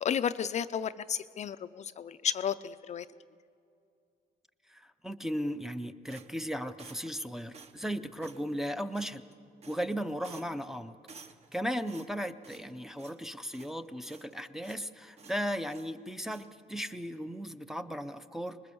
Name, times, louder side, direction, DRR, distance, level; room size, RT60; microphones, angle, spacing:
voice 1, 0.0-3.1, left 8 dB, 45° left, 12 dB, 0.4 m, -32 dB
voice 2, 4.7-9.2 9.7-11.0 11.5-18.6, equal, ahead, 6 dB, 0.5 m, -36 dB
sound 1, 6.1-7.2 7.5-7.9 8.2-8.4 8.9-9.3 9.6-10.0 10.2-10.7 11.1-11.6 11.9-12.7 13.0-13.2 13.5-14.3 14.6-14.9 15.2-15.9 16.2-16.5, right 5 dB, 40° right, 1.0 m, -53 dB
25.5 x 21.0 x 6.9 m, 2.5 s
cardioid pair, 170°, 16 cm